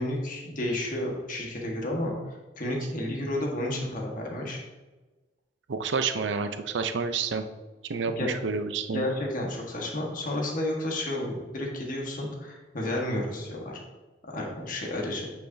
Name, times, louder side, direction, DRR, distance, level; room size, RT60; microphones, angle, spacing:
voice 1, 0.0-4.6 8.2-8.3 8.9-13.8 14.3-15.3, left 1 dB, 50° left, -1 dB, 1.5 m, -31 dB
voice 2, 5.7-7.4 7.9-9.0, right 5 dB, 80° right, 8 dB, 0.6 m, -29 dB
8.7 x 5.8 x 2.7 m, 1.2 s
head